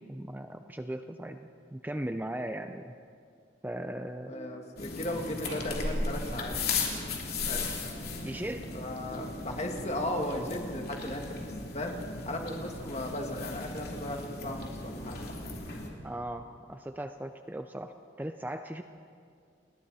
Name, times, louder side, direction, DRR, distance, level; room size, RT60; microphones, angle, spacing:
voice 1, 0.1-2.9 3.6-4.3 8.2-8.7 16.0-18.8, right 1 dB, 10° right, 7 dB, 0.5 m, -38 dB
sound 1, 4.2-5.6 5.8-11.1, right 1 dB, 10° left, 7.0 m, -51 dB
voice 2, 4.3-6.6 7.5-7.7 8.7-12.0 12.3-15.2, left 1 dB, 35° left, 2 dB, 1.9 m, -36 dB
sound 2, 4.8-15.9, left 3 dB, 55° left, 3.1 m, -36 dB
sound 3, 5.4-7.7, right 2 dB, 85° right, 3.2 m, -49 dB
29.5 x 21.0 x 4.2 m, 2.3 s
head